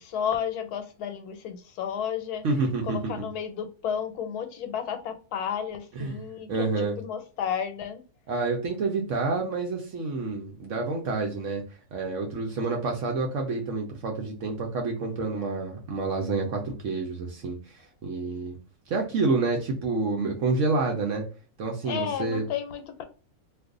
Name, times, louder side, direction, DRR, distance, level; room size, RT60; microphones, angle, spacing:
voice 1, 0.0-2.4 2.8-8.0 21.8-23.0, left 8 dB, 80° left, 8 dB, 1.2 m, -32 dB
voice 2, 2.4-3.3 6.0-6.2 6.5-6.9 8.3-11.6 11.9-17.6 18.0-18.6 18.9-21.2 21.6-22.4, right 3 dB, 65° right, 1 dB, 0.9 m, -28 dB
2.6 x 2.4 x 3.6 m, 0.36 s
omnidirectional pair, 1.6 m